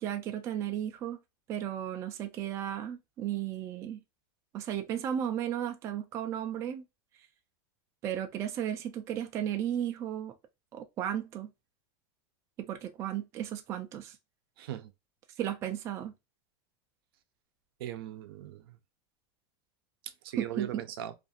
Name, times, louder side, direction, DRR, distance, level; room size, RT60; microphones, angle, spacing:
voice 1, 0.0-1.2 1.5-4.0 4.5-6.8 8.0-10.3 10.7-11.5 12.6-14.2 15.4-16.1 20.4-20.8, right 10 dB, 25° right, 0.3 m, -34 dB
voice 2, 14.6-14.9 17.8-18.8 20.2-21.1, right 11 dB, 75° right, 0.5 m, -39 dB
2.5 x 2.3 x 2.5 m
supercardioid pair, 165°, 13 cm